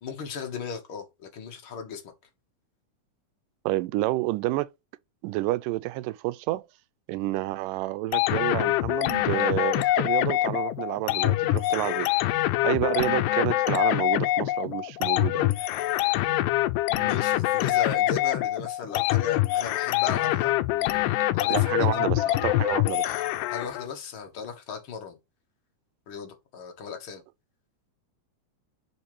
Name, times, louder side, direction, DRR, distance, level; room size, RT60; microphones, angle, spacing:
voice 1, 0.0-2.1 16.9-22.1 23.5-25.2 26.1-27.2, left 6 dB, 50° left, 1.7 m, -37 dB
voice 2, 3.7-4.7 5.2-6.7 7.1-12.1 12.6-15.5 21.5-23.2, right 18 dB, 90° right, 2.2 m, -29 dB
sound 1, 8.1-23.9, left 15 dB, 85° left, 2.1 m, -25 dB
7.0 x 5.2 x 3.1 m
omnidirectional pair, 3.7 m